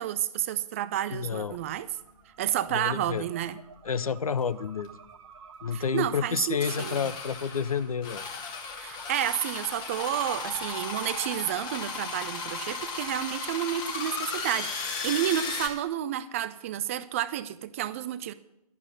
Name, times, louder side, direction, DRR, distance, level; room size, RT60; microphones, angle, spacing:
voice 1, 0.0-1.9 2.4-3.6 5.7-7.0 8.8-18.3, right 12 dB, 20° right, 14 dB, 0.3 m, -30 dB
voice 2, 1.1-1.6 2.7-3.2 3.8-4.9 5.6-8.3, left 6 dB, 70° left, 15 dB, 0.6 m, -30 dB
sound 1, 1.9-14.8, right 3 dB, 50° right, 1.3 m, -48 dB
sound 2, 4.4-4.5 4.8-4.9 6.6-15.7, left 5 dB, 20° left, 1.6 m, -35 dB
12.0 x 8.3 x 6.3 m, 0.87 s
figure-of-eight pair, 125°, 19 cm